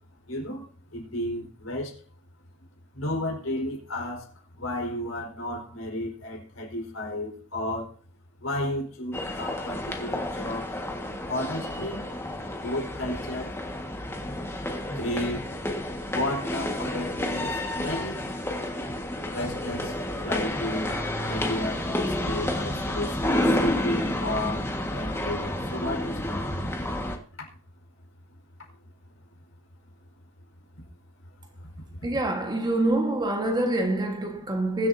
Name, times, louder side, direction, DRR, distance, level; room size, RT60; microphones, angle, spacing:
voice 1, 0.3-2.0 2.9-7.9 8.4-10.7 11.3-12.1 12.5-13.5 14.9-15.7 16.1-18.3 19.3-20.0 20.2-20.9 21.3-26.7 27.4-27.5 30.8-30.9 31.6-31.8, left 1 dB, 80° left, 4.6 m, -33 dB
sound 1, 9.1-27.2, left 1 dB, 10° left, 1.6 m, -30 dB
voice 2, 32.0-34.9, right 1 dB, 20° right, 1.5 m, -26 dB
22.0 x 7.5 x 2.7 m
head